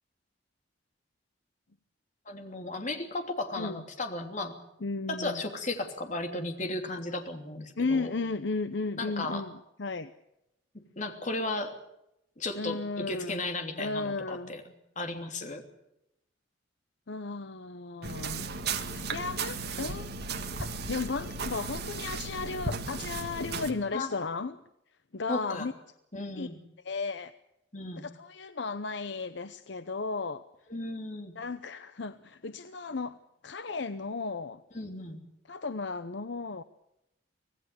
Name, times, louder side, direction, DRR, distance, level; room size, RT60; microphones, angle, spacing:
voice 1, 2.3-4.6 5.1-8.1 9.0-9.4 11.0-11.7 12.4-14.6 15.0-15.6 23.9-24.1 25.3-25.7 26.1-26.6 27.7-28.0 30.7-31.3 34.7-35.2, left 2 dB, 40° left, 5 dB, 3.0 m, -35 dB
voice 2, 4.8-5.4 7.8-10.1 12.6-13.4 13.8-14.5 17.1-18.5 18.9-20.1 20.6-24.6 25.1-25.7 26.4-26.5 26.8-27.3 28.0-30.4 31.4-33.2 33.4-34.6 35.5-36.6, left 3 dB, 65° left, 11 dB, 0.8 m, -34 dB
sound 1, 18.0-23.7, right 4 dB, 55° right, 1.9 m, -35 dB
25.0 x 18.0 x 6.9 m, 0.84 s
head